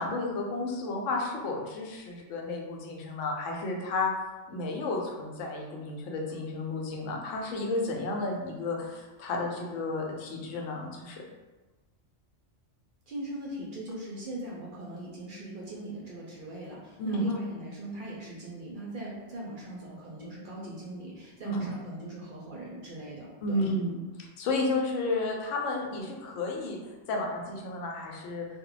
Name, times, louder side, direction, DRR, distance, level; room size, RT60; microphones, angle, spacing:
voice 1, 0.0-4.1 4.5-11.2 17.0-17.3 21.4-21.7 23.4-24.0 24.4-28.5, left 2 dB, 85° left, 0 dB, 0.9 m, -32 dB
voice 2, 13.1-23.7, right 1 dB, 55° right, -4 dB, 0.6 m, -40 dB
2.3 x 2.1 x 3.8 m, 1.2 s
omnidirectional pair, 1.2 m